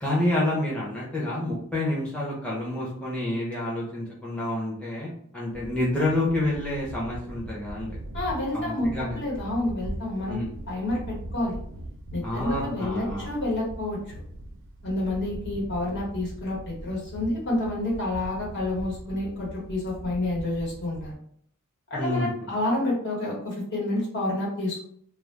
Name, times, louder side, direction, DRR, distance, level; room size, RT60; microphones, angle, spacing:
voice 1, 0.0-7.9 8.5-9.2 10.3-10.5 12.2-13.3 21.9-22.5, left 1 dB, 5° left, -7 dB, 0.6 m, -28 dB
sound 1, 5.5-21.1, right 1 dB, 60° right, 0.4 m, -40 dB
voice 2, 8.1-10.4 10.7-11.6 12.1-14.0 14.8-21.1 21.9-24.8, left 1 dB, 55° left, -5 dB, 1.1 m, -29 dB
2.2 x 2.0 x 3.1 m, 0.64 s
head